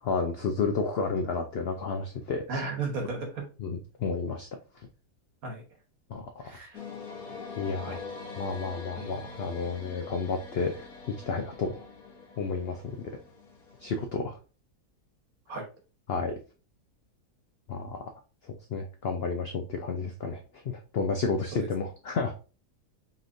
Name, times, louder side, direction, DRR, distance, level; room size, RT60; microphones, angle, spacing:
voice 1, 0.0-2.6 3.6-4.5 6.1-6.5 7.6-8.0 8.4-10.9 11.3-11.9 12.4-12.8 13.8-14.4 16.1-16.3 17.7-18.1 18.4-22.3, left 4 dB, 80° left, 4 dB, 0.5 m, -31 dB
voice 2, 2.5-3.4 5.4-5.6 6.4-6.8 7.8-8.0 9.0-9.1 15.5-15.6 21.5-21.7, right 3 dB, 65° right, 2 dB, 1.5 m, -34 dB
sound 1, 6.7-14.1, left 4 dB, 65° left, 1.3 m, -44 dB
5.5 x 3.1 x 2.6 m, 0.35 s
omnidirectional pair, 1.7 m